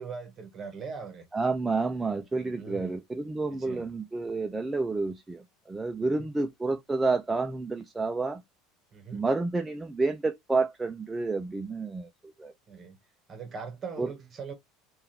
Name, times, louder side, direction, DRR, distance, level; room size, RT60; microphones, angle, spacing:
voice 1, 0.0-1.2 2.3-3.0 3.5-3.9 6.0-6.3 8.9-9.2 12.7-13.0 13.3-14.5, right 5 dB, 30° right, 1.1 m, -41 dB
voice 2, 1.3-8.4 9.1-12.1 12.4-12.5 14.0-14.1, right 3 dB, 10° right, 0.3 m, -29 dB
3.5 x 2.3 x 2.7 m
supercardioid pair, 130°, 0 cm